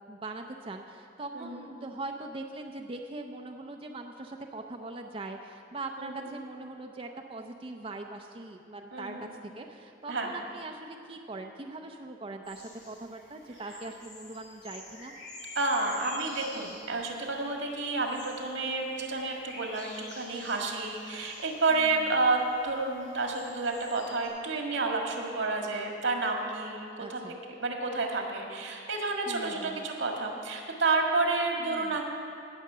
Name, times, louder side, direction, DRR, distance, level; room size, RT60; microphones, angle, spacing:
voice 1, 0.1-9.2 9.6-15.1 21.7-21.9 27.0-27.4 29.3-29.8 31.6-32.0, right 2 dB, 30° right, 3 dB, 0.6 m, -41 dB
voice 2, 6.0-6.3 8.9-9.3 10.1-10.3 15.6-32.0, right 3 dB, 90° right, 1 dB, 1.8 m, -30 dB
sound 1, 12.4-24.3, left 2 dB, 40° left, 3.8 m, -48 dB
17.0 x 6.5 x 6.7 m, 2.5 s
head